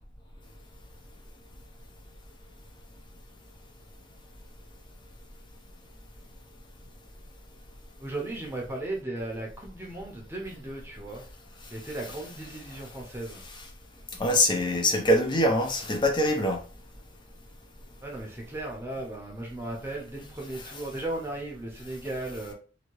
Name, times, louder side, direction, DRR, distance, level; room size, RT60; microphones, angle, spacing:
voice 1, 8.0-11.2 11.7-13.4 18.0-22.5, right 2 dB, 15° right, 0.7 m, -36 dB
voice 2, 14.2-16.6, left 1 dB, 25° left, 0.6 m, -23 dB
2.8 x 2.7 x 3.0 m
head